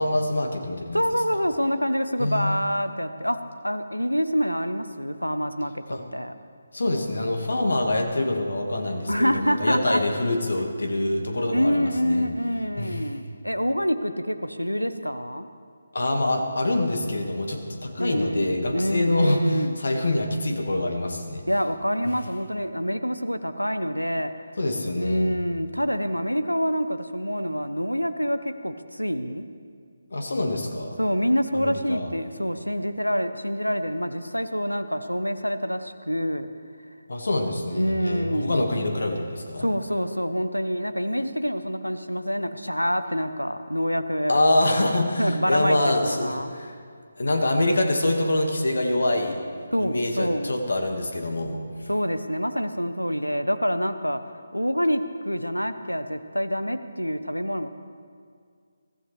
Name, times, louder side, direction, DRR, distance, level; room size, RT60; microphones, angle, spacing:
voice 1, 0.0-1.0 2.2-2.7 5.9-6.0 6.7-12.3 12.8-13.1 15.9-21.4 24.6-25.3 30.1-31.0 31.5-32.1 37.1-39.7 44.3-46.7 47.2-49.4 49.8-51.6, left 1 dB, 60° left, 3 dB, 1.9 m, -25 dB
voice 2, 0.9-3.4 3.6-6.3 9.1-10.0 11.5-15.5 18.0-19.7 21.5-24.3 25.0-29.5 31.0-36.5 37.7-38.6 39.6-44.4 45.2-46.5 49.7-50.5 51.9-54.2 54.5-57.7, equal, 90° left, 10 dB, 0.9 m, -26 dB
23.0 x 14.5 x 3.4 m, 2.1 s
figure-of-eight pair, 150°, 0 cm